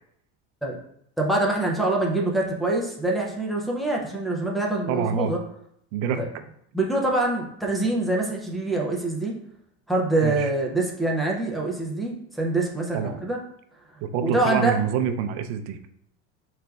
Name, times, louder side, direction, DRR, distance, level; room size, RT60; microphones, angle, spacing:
voice 1, 1.2-5.4 6.2-6.3 6.7-9.3 9.9-13.4 14.2-14.8, right 2 dB, ahead, -1 dB, 0.3 m, -25 dB
voice 2, 4.9-5.3 5.9-6.2 10.2-10.5 12.9-13.2 14.0-15.8, right 7 dB, 75° right, 8 dB, 0.5 m, -26 dB
5.0 x 3.2 x 2.3 m, 0.70 s
cardioid pair, 160°, 34 cm